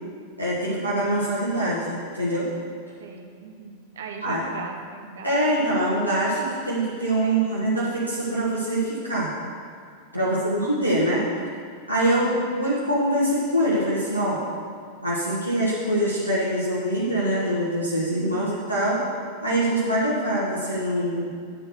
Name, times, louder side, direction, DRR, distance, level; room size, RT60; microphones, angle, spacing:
voice 1, 0.4-2.5 4.2-4.4 5.2-9.3 10.1-11.2 11.9-12.3 12.5-14.4 15.0-19.0 19.4-21.3, right 1 dB, 90° right, -9 dB, 1.5 m, -24 dB
voice 2, 3.0-5.8 7.2-7.7 10.2-10.6 11.0-11.1 12.1-12.5 18.1-18.6, right 5 dB, 60° right, 3 dB, 1.0 m, -38 dB
9.6 x 4.5 x 6.6 m, 2.2 s
figure-of-eight pair, 90°, 0 cm